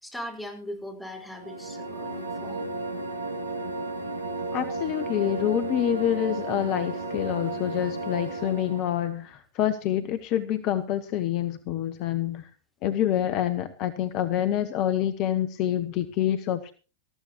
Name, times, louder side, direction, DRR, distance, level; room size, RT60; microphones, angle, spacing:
voice 1, 0.0-2.7, equal, 5° left, 1 dB, 5.0 m, -39 dB
sound 1, 1.3-9.1, right 2 dB, 75° right, 2.5 m, -33 dB
voice 2, 4.5-12.5 12.8-16.7, left 11 dB, 40° left, 11 dB, 0.9 m, -27 dB
19.0 x 14.0 x 3.0 m, 0.35 s
figure-of-eight pair, 90°, 0 cm